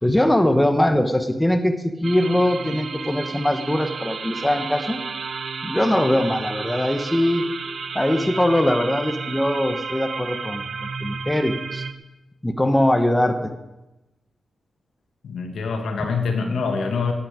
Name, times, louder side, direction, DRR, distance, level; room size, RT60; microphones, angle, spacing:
voice 1, 0.0-5.0 5.6-7.5 7.9-11.8 12.4-13.5, left 1 dB, 10° left, 6 dB, 1.2 m, -21 dB
sound 1, 2.0-11.9, right 5 dB, 60° right, 0.8 m, -32 dB
voice 2, 15.2-17.1, left 4 dB, 85° left, 3 dB, 2.0 m, -25 dB
17.0 x 9.0 x 5.1 m, 1.0 s
cardioid pair, 90°, 0 cm